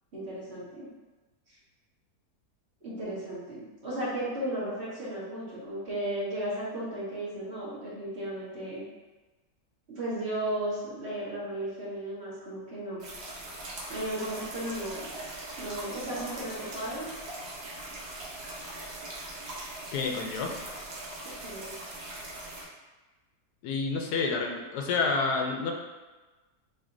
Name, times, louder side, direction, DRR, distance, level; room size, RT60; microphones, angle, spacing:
voice 1, 0.1-0.9 1.5-1.6 2.8-8.8 9.9-13.0 13.9-15.0 15.6-17.1 21.2-21.7, right 1 dB, 45° right, -9 dB, 1.7 m, -35 dB
sound 1, 13.0-22.6, right 2 dB, 70° right, 1.5 m, -41 dB
voice 2, 19.9-20.6 23.6-25.7, left 4 dB, 80° left, 2 dB, 1.2 m, -29 dB
6.5 x 2.9 x 2.6 m, 1.2 s
omnidirectional pair, 1.7 m